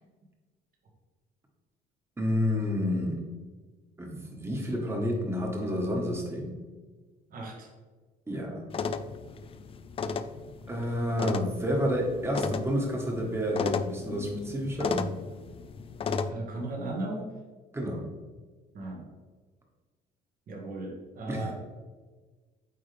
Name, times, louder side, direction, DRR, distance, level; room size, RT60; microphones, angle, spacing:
voice 1, 2.2-3.2 4.0-6.6 8.3-8.6 10.7-15.1 17.7-18.0 21.3-21.5, equal, 15° right, 0 dB, 1.5 m, -30 dB
voice 2, 7.3-7.7 16.2-17.3 18.7-19.1 20.5-21.5, right 2 dB, 55° right, -1 dB, 1.7 m, -36 dB
sound 1, 8.7-16.3, left 5 dB, 35° left, 0.4 m, -34 dB
8.6 x 3.5 x 3.4 m, 1.4 s
cardioid pair, 110°, 17 cm